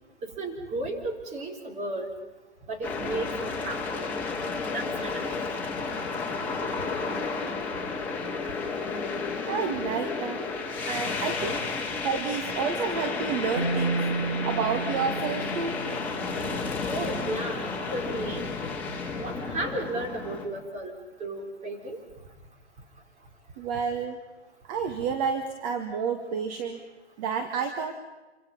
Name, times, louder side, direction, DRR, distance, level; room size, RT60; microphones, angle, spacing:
voice 1, 0.2-2.1 2.7-4.1 4.7-5.2 16.9-18.5 19.2-22.0, right 2 dB, 20° right, 3 dB, 4.1 m, -34 dB
sound 1, 2.8-20.5, left 4 dB, 5° left, 3.9 m, -32 dB
voice 2, 9.5-10.5 10.9-11.6 12.0-15.8 23.6-24.2 24.7-26.8 27.2-27.9, right 6 dB, 35° right, 6 dB, 1.9 m, -30 dB
sound 2, 13.6-16.9, right 3 dB, 70° right, 5.0 m, -32 dB
27.5 x 25.5 x 5.5 m, 1.1 s
figure-of-eight pair, 125°, 34 cm